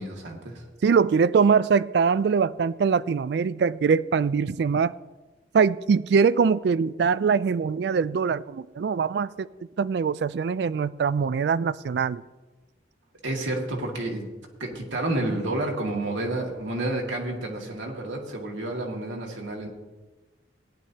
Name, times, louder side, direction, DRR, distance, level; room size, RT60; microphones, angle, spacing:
voice 1, 0.0-0.6 13.2-14.3 14.6-19.7, right 2 dB, 90° right, 2.1 m, -30 dB
voice 2, 0.8-4.9 5.5-9.5 9.8-12.2, right 6 dB, 60° right, 0.3 m, -22 dB
17.5 x 10.5 x 2.8 m
head